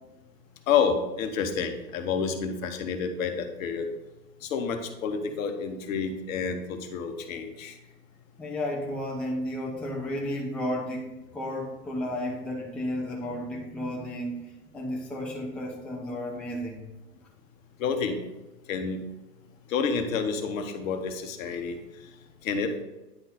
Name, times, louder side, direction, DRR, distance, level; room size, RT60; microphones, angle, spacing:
voice 1, 0.7-3.9 4.4-7.7 17.8-18.2 18.7-19.0 19.7-21.8 22.4-22.7, left 6 dB, 55° left, 6 dB, 1.1 m, -29 dB
voice 2, 8.4-14.4 14.7-16.8, left 1 dB, ahead, -3 dB, 0.6 m, -33 dB
9.9 x 3.8 x 4.0 m, 1.0 s
hypercardioid pair, 115°, 49 cm